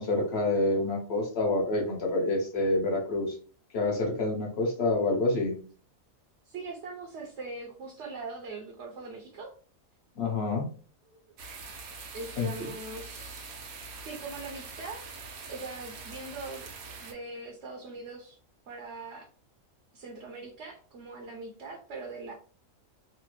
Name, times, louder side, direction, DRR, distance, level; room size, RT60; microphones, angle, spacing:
voice 1, 0.0-3.3 3.7-5.5 10.2-10.7 12.4-12.5, left 2 dB, 50° left, 0 dB, 1.2 m, -27 dB
voice 2, 6.4-9.5 11.1-11.2 12.1-13.6 14.0-15.1 15.5-16.7 17.0-18.4 18.7-19.3 19.9-22.3, right 3 dB, 65° right, 1 dB, 0.9 m, -41 dB
sound 1, 11.4-17.1, right 4 dB, 90° right, 1.1 m, -44 dB
3.1 x 2.1 x 3.1 m, 0.40 s
omnidirectional pair, 1.4 m